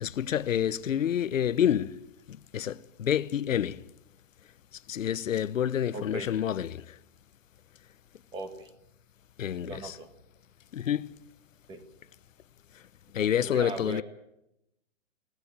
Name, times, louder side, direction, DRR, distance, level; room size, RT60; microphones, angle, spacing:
voice 1, 0.0-2.0 2.3-3.8 4.9-7.0 9.4-10.0 10.7-11.1 13.1-14.0, left 10 dB, 90° left, 1.0 m, -28 dB
voice 2, 5.9-6.3 8.3-8.7 9.6-10.1 11.7-11.8 13.2-14.0, right 3 dB, 10° right, 1.5 m, -38 dB
21.0 x 18.0 x 8.7 m
hypercardioid pair, 170°, 38 cm